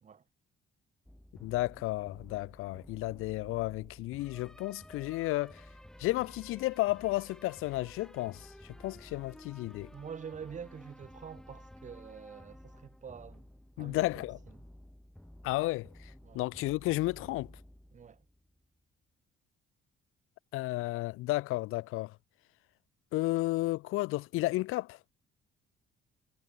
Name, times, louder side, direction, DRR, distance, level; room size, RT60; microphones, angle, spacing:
sound 1, 1.1-18.7, left 1 dB, 5° left, 4.7 m, -53 dB
voice 1, 1.4-5.6 6.0-9.9 13.8-14.4 15.4-17.5 20.5-22.2 23.1-25.0, left 19 dB, 80° left, 0.5 m, -33 dB
voice 2, 9.9-13.5 13.8-14.1 16.2-16.4 17.9-18.2, right 7 dB, 35° right, 2.7 m, -46 dB
cardioid pair, 135°, 21 cm